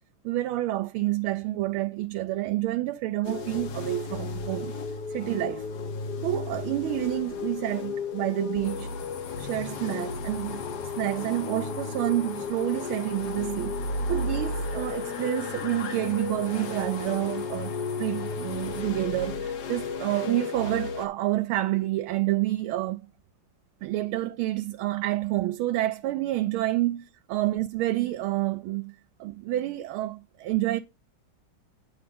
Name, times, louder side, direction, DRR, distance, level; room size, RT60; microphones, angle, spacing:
voice 1, 0.2-4.7 5.1-5.7 6.2-8.9 9.4-10.6 11.0-13.8 14.1-17.7 18.0-23.0 23.8-27.0 27.3-28.9 29.2-30.8, right 16 dB, 85° right, 1.4 m, -28 dB
sound 1, 3.2-21.1, left 4 dB, 60° left, 1.3 m, -34 dB
sound 2, 8.6-18.8, left 8 dB, 90° left, 0.6 m, -43 dB
8.7 x 3.8 x 6.9 m
omnidirectional pair, 2.3 m